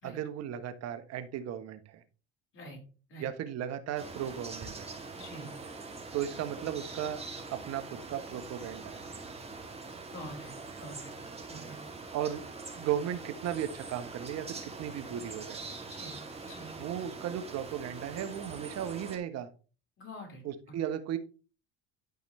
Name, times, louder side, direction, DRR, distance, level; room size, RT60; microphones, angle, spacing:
voice 1, 0.0-2.0 3.2-4.9 6.1-7.2 7.5-9.0 12.1-12.4 12.7-15.6 16.8-19.5 20.4-21.2, right 10 dB, 50° right, 10 dB, 1.2 m, -36 dB
sound 1, 4.0-19.2, right 3 dB, 20° right, 2.6 m, -43 dB
voice 2, 5.1-5.5 10.1-11.1 11.5-11.8 15.9-16.2 16.4-16.8 20.0-20.4, equal, 40° left, 1 dB, 4.4 m, -46 dB
12.0 x 5.0 x 3.2 m, 0.36 s
hypercardioid pair, 85°, 32 cm